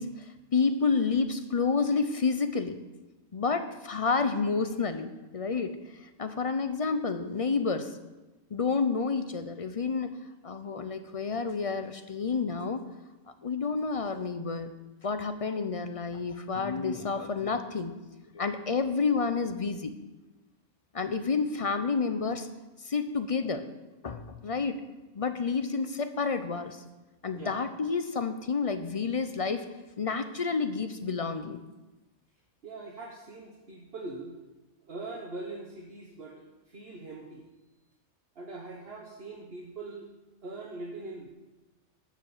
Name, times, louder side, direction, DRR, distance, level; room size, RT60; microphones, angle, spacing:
voice 1, 0.0-2.8 3.3-8.0 8.5-10.1 10.4-12.9 13.4-14.7 15.0-17.9 18.3-19.9 20.9-22.5 22.8-23.7 24.0-24.8 25.1-26.8 27.2-29.7 30.0-31.6, left 4 dB, 40° left, 9 dB, 0.5 m, -29 dB
voice 2, 27.3-27.6 32.6-34.3 34.9-37.4 38.3-40.1 40.4-41.3, right 2 dB, 55° right, -1 dB, 1.4 m, -42 dB
12.0 x 5.1 x 7.8 m, 1.1 s
omnidirectional pair, 1.3 m